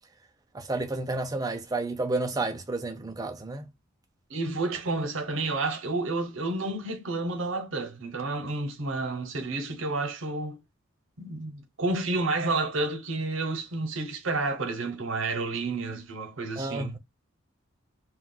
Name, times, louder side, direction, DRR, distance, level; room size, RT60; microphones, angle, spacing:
voice 1, 0.5-3.7 16.6-17.0, right 2 dB, 15° right, 0.5 m, -31 dB
voice 2, 4.3-10.6 11.2-16.9, right 3 dB, 65° right, 0.8 m, -30 dB
2.3 x 2.2 x 3.8 m
head